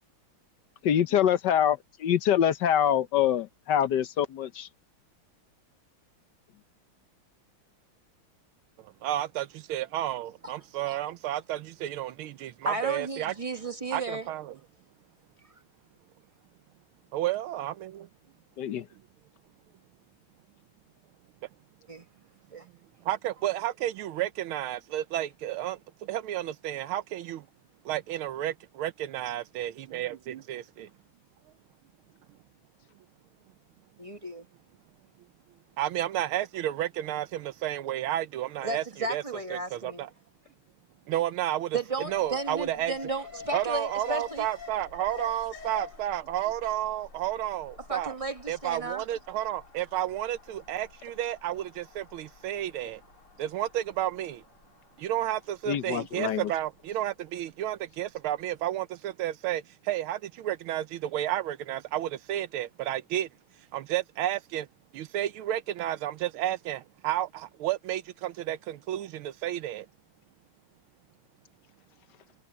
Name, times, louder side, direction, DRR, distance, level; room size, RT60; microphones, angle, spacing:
voice 1, 0.8-4.7 18.6-18.8 55.7-56.5, left 9 dB, 65° left, 1.3 m, -25 dB
voice 2, 8.8-13.3 13.9-14.6 17.1-18.1 23.0-27.5 27.8-30.9 35.8-38.8 39.1-39.2 39.5-40.1 41.1-41.8 42.1-42.9 43.5-48.1 48.5-53.0 53.4-54.4 55.0-63.3 63.7-64.7 64.9-69.9, right 13 dB, 85° right, 1.7 m, -31 dB
voice 3, 12.6-14.3 21.9-22.0 22.5-22.7 34.0-34.4 38.6-40.0 41.7-44.5 47.9-49.0, right 2 dB, 20° right, 0.9 m, -34 dB
Alarm, 42.0-58.2 58.5-58.6, left 5 dB, 85° left, 5.7 m, -48 dB
omnidirectional pair, 2.2 m